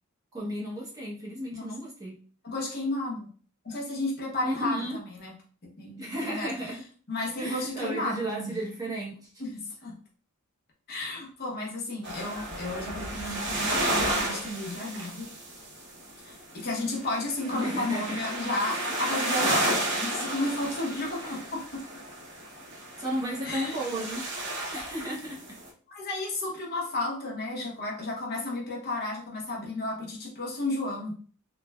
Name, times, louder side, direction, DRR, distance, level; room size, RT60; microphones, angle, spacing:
voice 1, 0.3-2.2 4.4-5.0 6.0-6.8 7.4-9.3 17.5-18.2 21.2-21.4 23.0-24.3 24.7-25.5, right 1 dB, 15° right, -5 dB, 0.8 m, -33 dB
voice 2, 2.4-3.3 3.6-5.3 5.6-6.5 7.1-8.6 9.4-9.9 10.9-15.3 16.2-21.8 23.4-23.7 25.9-31.1, left 2 dB, 50° left, -2 dB, 0.8 m, -33 dB
sound 1, 12.0-16.4 16.7-25.7, right 1 dB, 55° right, 0.8 m, -32 dB
3.1 x 2.2 x 2.2 m, 0.43 s
head